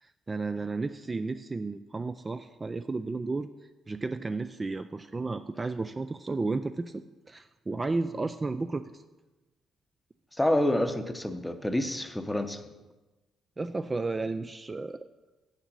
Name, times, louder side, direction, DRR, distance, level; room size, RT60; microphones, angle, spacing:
voice 1, 0.0-3.5 3.9-9.0 13.6-15.0, right 3 dB, 25° right, 10 dB, 0.3 m, -33 dB
voice 2, 10.4-12.7, left 1 dB, 10° left, 8 dB, 0.7 m, -28 dB
7.0 x 6.6 x 6.2 m, 1.1 s
cardioid pair, 90°, 0 cm